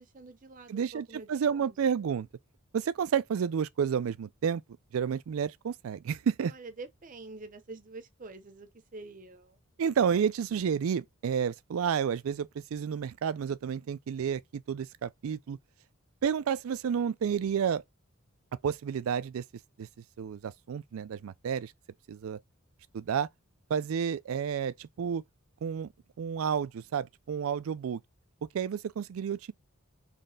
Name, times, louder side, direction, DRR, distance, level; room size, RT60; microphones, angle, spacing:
voice 1, 0.0-1.8 6.5-9.6, right 3 dB, 40° right, 0.7 m, -47 dB
voice 2, 0.7-2.3 2.7-4.6 4.9-6.5 9.8-15.6 16.2-17.8 18.6-19.4 19.8-19.9 20.2-21.7 22.1-22.4 22.9-23.3 23.7-25.2 25.6-25.9 26.2-28.0 28.5-29.5, right 7 dB, 75° right, 0.4 m, -30 dB
4.1 x 3.1 x 3.8 m
head